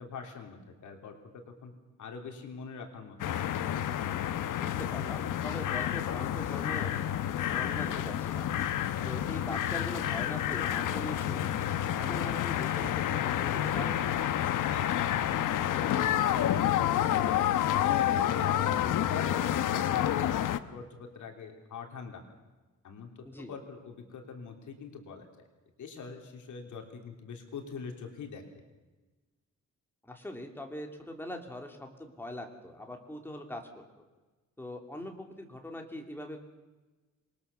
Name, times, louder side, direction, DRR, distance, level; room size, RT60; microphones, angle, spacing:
voice 1, 0.0-1.7 2.0-3.5 14.6-14.9 15.2-17.5 17.8-22.2 22.8-25.3 25.8-28.4, left 5 dB, 70° left, 3 dB, 3.5 m, -44 dB
sound 1, 3.2-20.6, left 11 dB, 90° left, 1.1 m, -29 dB
voice 2, 4.6-6.9 7.5-8.5 9.0-11.5 12.0-14.0 23.2-23.5 30.0-33.6 34.6-36.4, left 1 dB, 5° left, 3 dB, 2.8 m, -42 dB
27.0 x 21.0 x 7.0 m, 1.2 s
wide cardioid pair, 160°, 31 cm